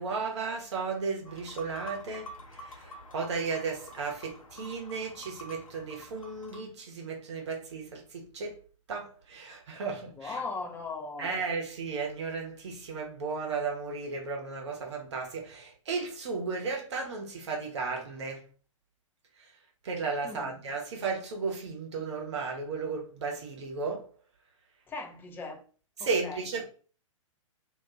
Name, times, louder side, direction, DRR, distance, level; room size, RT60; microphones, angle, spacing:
voice 1, 0.0-8.6 8.9-10.4 11.2-18.4 19.8-24.1 26.0-26.7, right 4 dB, 55° right, 0.8 m, -34 dB
sound 1, 1.2-6.6, equal, 80° left, 0.6 m, -47 dB
voice 2, 10.2-11.4 20.2-20.5 24.9-25.6 26.0-26.5, left 4 dB, 10° left, 0.4 m, -38 dB
2.4 x 2.1 x 3.7 m
figure-of-eight pair, 110°, 17 cm